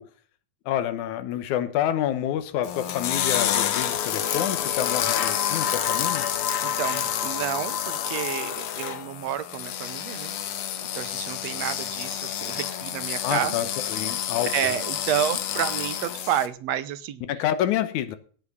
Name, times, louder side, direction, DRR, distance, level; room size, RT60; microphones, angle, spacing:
voice 1, 0.7-6.3 13.2-14.7 17.3-18.2, left 11 dB, 80° left, 10 dB, 2.5 m, -28 dB
sound 1, 2.6-16.5, left 10 dB, 60° left, 1.6 m, -28 dB
voice 2, 6.6-10.4 10.9-13.7 14.5-17.2, right 10 dB, 70° right, 13 dB, 1.9 m, -30 dB
17.0 x 6.1 x 6.8 m, 0.43 s
omnidirectional pair, 3.4 m